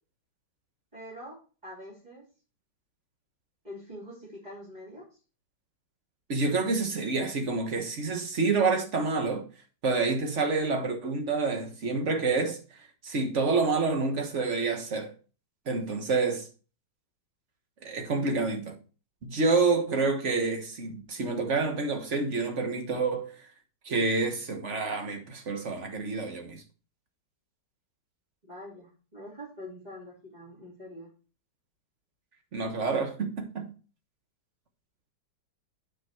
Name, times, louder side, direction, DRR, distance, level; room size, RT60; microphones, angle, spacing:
voice 1, 0.9-2.3 3.6-5.1 28.5-31.1, equal, 20° right, 3.7 m, -44 dB
voice 2, 6.3-9.4 9.8-12.6 13.0-15.1 15.7-16.5 17.8-18.8 19.2-23.3 23.8-26.6 32.5-33.7, right 4 dB, 45° right, 1.7 m, -28 dB
9.2 x 5.3 x 4.5 m
omnidirectional pair, 1.9 m